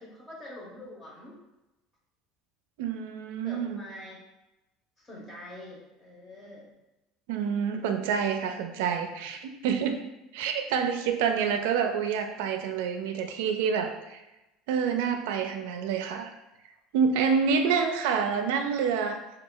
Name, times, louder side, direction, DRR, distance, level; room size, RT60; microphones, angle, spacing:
voice 1, 0.0-1.3 3.4-4.2 5.0-6.7 17.5-17.9, left 1 dB, 15° left, -3 dB, 0.7 m, -45 dB
voice 2, 2.8-3.8 7.3-10.0 10.3-14.2 14.7-16.3 16.9-19.2, right 6 dB, 85° right, 5 dB, 0.4 m, -27 dB
3.0 x 2.3 x 3.7 m, 0.98 s
cardioid pair, 175°, 0 cm